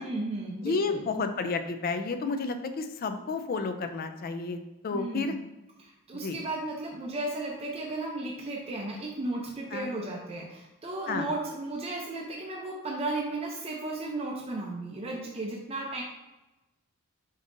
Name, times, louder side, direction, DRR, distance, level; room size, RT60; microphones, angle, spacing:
voice 1, 0.0-1.0 4.9-5.4 5.8-16.0, right 2 dB, 25° right, -1 dB, 0.5 m, -34 dB
voice 2, 0.6-5.3 6.1-6.4 9.7-9.9 11.1-11.3, left 4 dB, 40° left, 8 dB, 0.4 m, -31 dB
5.2 x 3.9 x 2.5 m, 1.0 s
head